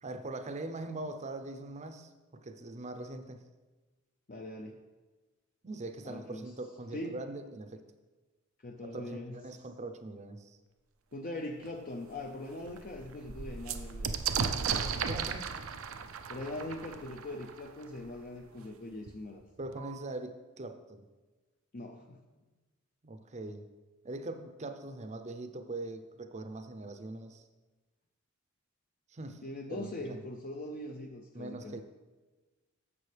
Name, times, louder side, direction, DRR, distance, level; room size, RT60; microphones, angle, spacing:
voice 1, 0.0-3.4 5.6-7.9 8.8-10.6 15.0-15.5 19.6-21.1 23.0-23.7 24.0-27.4 29.1-29.4 29.7-30.2 31.3-31.8, right 2 dB, 35° right, 8 dB, 0.6 m, -42 dB
voice 2, 4.3-4.8 6.0-6.5 6.9-7.2 8.6-9.4 11.1-14.6 16.3-19.4 21.7-22.2 29.4-31.8, left 1 dB, 45° left, 2 dB, 0.6 m, -41 dB
sound 1, 11.6-11.7 12.2-12.3 12.5-18.1 19.1-19.2 19.4-20.0, right 6 dB, 80° right, 0.6 m, -36 dB
11.0 x 7.3 x 3.4 m, 1.2 s
head